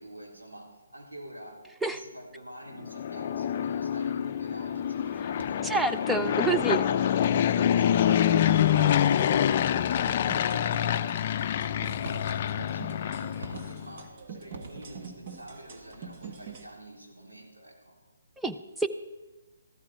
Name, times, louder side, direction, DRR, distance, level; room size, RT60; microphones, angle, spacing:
voice 1, 0.0-1.6 1.9-5.7 6.3-9.3 9.9-11.5 12.1-18.0, right 1 dB, 85° right, -2 dB, 4.2 m, -47 dB
Fixed-wing aircraft airplane, 2.8-13.9, left 10 dB, 40° left, 0.5 m, -26 dB
sound 1, 5.4-5.8 7.2-7.7 8.8-8.9 9.1-9.7 10.7-11.2 12.0-12.6 13.4-14.1 14.5-15.2, right 2 dB, 60° right, 2.1 m, -45 dB
voice 2, 5.6-6.8 8.7-8.9 18.4-18.9, right 3 dB, 5° right, 7 dB, 0.6 m, -28 dB
sound 2, 6.1-16.6, right 5 dB, 40° right, 1.5 m, -46 dB
14.0 x 13.5 x 4.6 m, 1.1 s
figure-of-eight pair, 140°, 0 cm